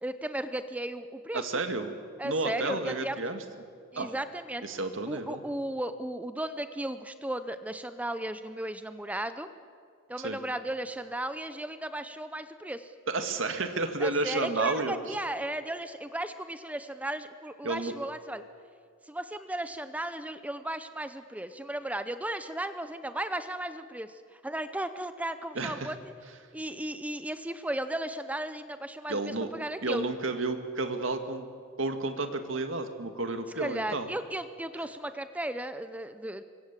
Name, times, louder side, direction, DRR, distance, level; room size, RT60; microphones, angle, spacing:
voice 1, 0.0-1.6 2.2-3.3 3.9-4.6 5.1-9.5 10.1-12.9 14.0-18.4 19.1-26.1 26.5-30.0 33.6-36.4, right 1 dB, 5° right, 11 dB, 0.7 m, -35 dB
voice 2, 1.3-2.0 2.2-3.4 4.0-4.1 4.6-5.4 10.2-10.4 13.1-15.2 17.6-17.9 25.6-25.9 29.1-29.5 29.8-31.5 31.8-34.1, right 2 dB, 70° right, 7 dB, 2.1 m, -31 dB
26.0 x 23.5 x 7.5 m, 2.3 s
head